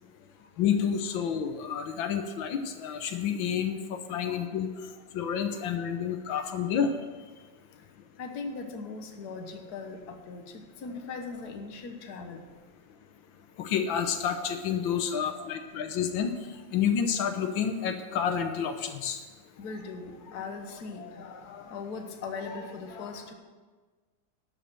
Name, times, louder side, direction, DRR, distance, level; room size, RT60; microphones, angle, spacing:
voice 1, 0.6-4.7 5.1-6.9 13.6-16.3 16.7-19.2, left 7 dB, 90° left, 7 dB, 1.6 m, -29 dB
voice 2, 8.2-12.4 15.2-15.6 19.6-23.3, left 4 dB, 60° left, 4 dB, 1.6 m, -40 dB
12.0 x 6.6 x 7.5 m, 1.4 s
omnidirectional pair, 2.0 m